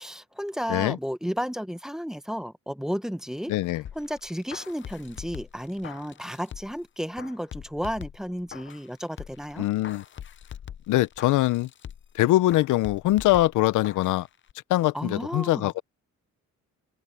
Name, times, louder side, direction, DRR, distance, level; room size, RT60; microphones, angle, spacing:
voice 1, 0.0-3.5 3.9-9.7 14.9-15.7, equal, ahead, 1.2 m, -33 dB
voice 2, 3.5-3.8 9.6-10.0 10.9-11.7 12.1-14.3 14.7-15.8, left 16 dB, 85° left, 0.6 m, -23 dB
sound 1, 3.8-6.8 7.2-8.9 9.2-12.2 12.5-14.2 14.5-14.6, left 9 dB, 40° left, 0.6 m, -43 dB
cardioid pair, 90°, 30 cm